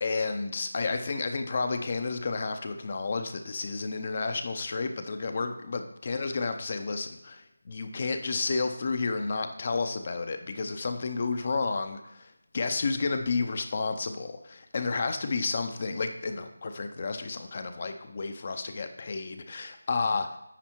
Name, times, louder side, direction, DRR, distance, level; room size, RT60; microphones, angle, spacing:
voice 1, 0.0-20.3, left 4 dB, 35° left, 8 dB, 0.6 m, -31 dB
9.9 x 3.5 x 4.5 m, 0.86 s
figure-of-eight pair, 170°, 0 cm